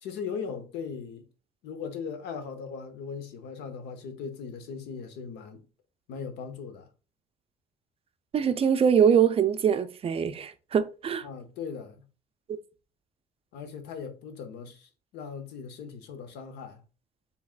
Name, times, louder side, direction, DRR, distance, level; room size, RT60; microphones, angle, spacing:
voice 1, 0.0-1.3 1.6-5.7 6.1-6.9 11.2-12.0 13.5-16.8, left 6 dB, 85° left, 0.8 m, -39 dB
voice 2, 8.3-11.3 12.5-12.6, right 7 dB, 35° right, 0.4 m, -23 dB
4.9 x 3.4 x 2.4 m
cardioid pair, 110°, 17 cm